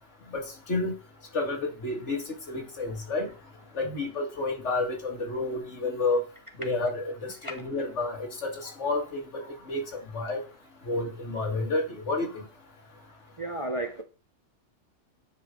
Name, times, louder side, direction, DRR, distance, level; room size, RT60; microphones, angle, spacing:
voice 1, 0.3-0.9 1.3-2.2 2.5-3.3 3.8-6.2 6.6-7.1 7.4-8.5 8.8-9.2 9.7-10.4 10.9-12.3, left 3 dB, 65° left, 2 dB, 2.2 m, -30 dB
voice 2, 13.4-14.0, right 2 dB, 30° right, 5 dB, 0.7 m, -33 dB
9.8 x 5.1 x 3.8 m, 0.34 s
omnidirectional pair, 1.3 m